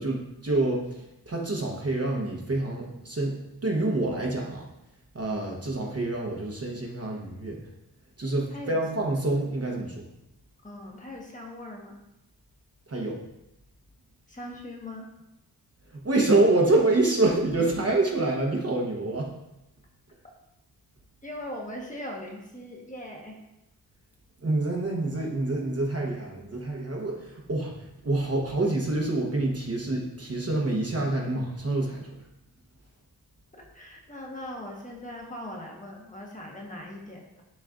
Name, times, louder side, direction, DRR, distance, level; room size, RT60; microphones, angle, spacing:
voice 1, 0.0-3.3 3.6-4.7 5.1-7.6 8.2-9.9 12.9-13.2 15.9-19.3 24.4-32.1, right 2 dB, 40° right, -1 dB, 1.0 m, -27 dB
voice 2, 10.6-12.0 14.3-15.1 21.2-23.4 33.7-37.3, left 1 dB, 20° left, -1 dB, 1.2 m, -40 dB
10.5 x 4.1 x 2.5 m, 0.89 s
wide cardioid pair, 145°, 39 cm